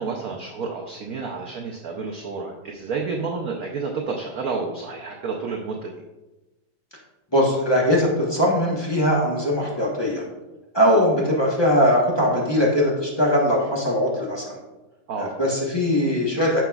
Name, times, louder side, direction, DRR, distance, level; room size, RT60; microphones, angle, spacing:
voice 1, 0.0-5.9 15.1-15.4, right 4 dB, 85° right, 1 dB, 0.7 m, -30 dB
voice 2, 7.3-10.3 10.7-14.6 15.2-16.6, equal, 25° left, -3 dB, 0.6 m, -20 dB
9.2 x 6.0 x 2.3 m, 1.1 s
omnidirectional pair, 2.4 m